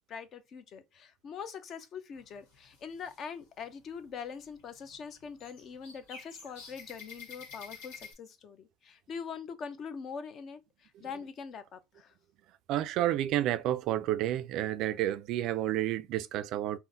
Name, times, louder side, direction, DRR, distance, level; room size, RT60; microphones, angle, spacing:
voice 1, 0.1-12.1, left 6 dB, 45° left, 0.5 m, -43 dB
sound 1, 2.1-3.2 3.6-4.1 4.4-8.1, left 5 dB, 85° left, 1.2 m, -49 dB
voice 2, 12.7-16.8, right 13 dB, 60° right, 0.3 m, -30 dB
3.7 x 2.1 x 2.6 m
supercardioid pair, 115°, 0 cm